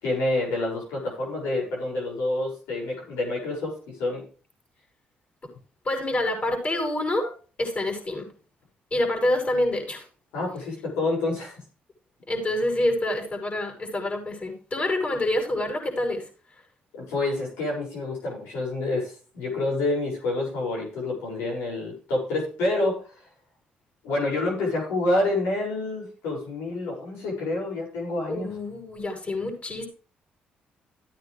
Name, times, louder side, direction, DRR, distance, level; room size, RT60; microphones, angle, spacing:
voice 1, 0.0-4.2 10.3-11.6 16.9-23.0 24.0-28.5, left 2 dB, 85° left, -2 dB, 6.5 m, -28 dB
voice 2, 5.8-7.3 7.6-8.3 8.9-10.1 12.3-16.2 28.3-29.9, left 1 dB, 40° left, 2 dB, 6.8 m, -27 dB
14.0 x 9.3 x 3.4 m, 0.37 s
supercardioid pair, 65°, 4 cm